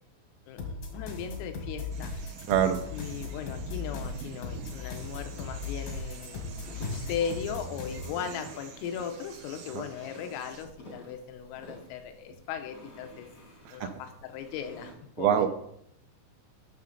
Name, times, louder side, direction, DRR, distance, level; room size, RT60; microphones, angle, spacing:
voice 1, 0.5-2.1 2.9-13.3 13.7-15.5, left 7 dB, 90° left, 7 dB, 3.6 m, -38 dB
sound 1, 0.6-8.2, left 3 dB, 70° left, 1.7 m, -38 dB
sound 2, 1.9-10.6, right 6 dB, 70° right, 2.2 m, -47 dB
voice 2, 2.5-2.8 9.7-9.8 13.7-13.9 15.2-15.5, right 10 dB, 85° right, 7 dB, 3.4 m, -25 dB
sound 3, 6.4-14.9, left 1 dB, 55° left, 0.9 m, -47 dB
12.5 x 6.6 x 4.1 m, 0.73 s
omnidirectional pair, 5.8 m